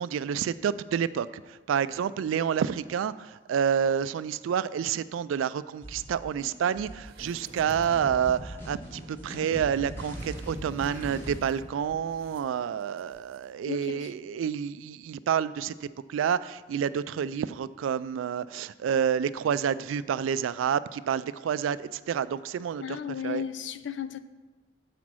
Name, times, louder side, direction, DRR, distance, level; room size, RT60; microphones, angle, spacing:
voice 1, 0.0-23.0 23.2-23.4, right 8 dB, 85° right, 17 dB, 0.3 m, -29 dB
sound 1, 5.8-11.4, equal, 10° left, 2.7 m, -40 dB
sound 2, 7.0-8.3 8.9-13.4 13.7-13.8, right 1 dB, 55° right, 0.7 m, -52 dB
voice 2, 13.7-14.1 22.7-24.2, left 8 dB, 65° left, 12 dB, 0.4 m, -35 dB
7.2 x 5.0 x 6.1 m, 1.3 s
head